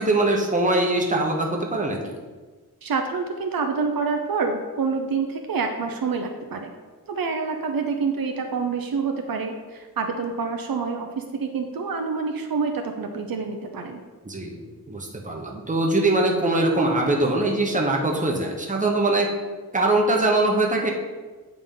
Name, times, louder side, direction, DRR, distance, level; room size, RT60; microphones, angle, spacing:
voice 1, 0.0-2.1 14.2-19.3 19.7-20.9, right 2 dB, 20° right, -1 dB, 1.0 m, -22 dB
voice 2, 2.8-6.7 7.1-14.0, right 5 dB, 70° right, 4 dB, 0.6 m, -27 dB
8.6 x 3.9 x 3.8 m, 1.4 s
wide cardioid pair, 120°, 36 cm